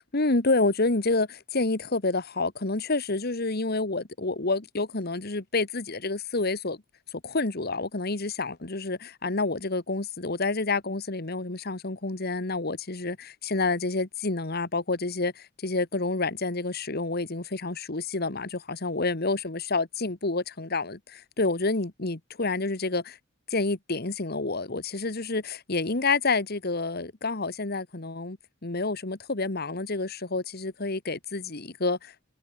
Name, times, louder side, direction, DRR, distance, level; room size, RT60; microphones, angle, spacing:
voice 1, 0.1-6.8 7.2-23.2 23.5-32.2, left 3 dB, 55° left, 1.7 m, -28 dB
head